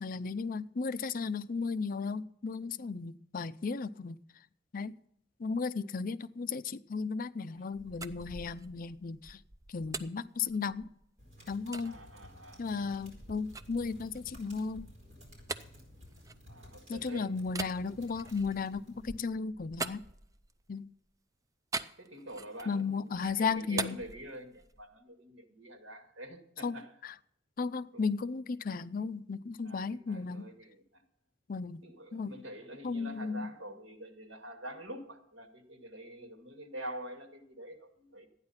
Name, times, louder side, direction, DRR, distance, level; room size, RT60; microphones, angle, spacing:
voice 1, 0.0-4.2 4.7-4.9 5.4-9.4 9.7-10.9 11.5-12.0 12.6-14.9 16.9-20.1 20.7-20.9 22.7-24.0 26.6-26.7 27.0-27.1 27.6-30.5 31.5-31.8 32.1-32.3 32.8-33.5, left 4 dB, 45° left, 14 dB, 0.4 m, -35 dB
sound 1, 7.6-11.1 11.7-11.9 12.5-16.9 17.5-20.7 21.7-22.8 23.1-24.9, right 3 dB, 15° right, 0.5 m, -43 dB
sound 2, 11.2-19.2, equal, 35° right, 4.6 m, -55 dB
voice 2, 11.8-12.7 16.5-17.3 22.0-26.9 27.9-28.1 29.6-31.0 31.8-38.3, right 1 dB, 80° right, 4 dB, 2.0 m, -46 dB
13.0 x 9.7 x 5.6 m, 0.73 s
head